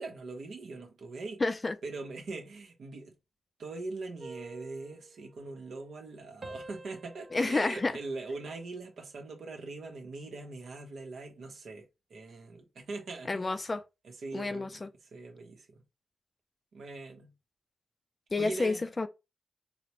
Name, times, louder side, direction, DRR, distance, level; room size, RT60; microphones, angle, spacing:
voice 1, 0.0-1.4 1.8-3.1 3.6-13.6 14.0-15.8 16.7-17.3 18.4-18.8, right 3 dB, 80° right, 0.9 m, -42 dB
voice 2, 1.4-1.7 7.3-7.9 13.3-13.8 14.3-14.9 18.3-19.1, left 3 dB, 35° left, 0.4 m, -29 dB
sound 1, 4.2-6.1 6.4-9.0 9.4-9.8, right 2 dB, 45° right, 0.5 m, -50 dB
4.0 x 2.1 x 3.0 m
cardioid pair, 65°, 0 cm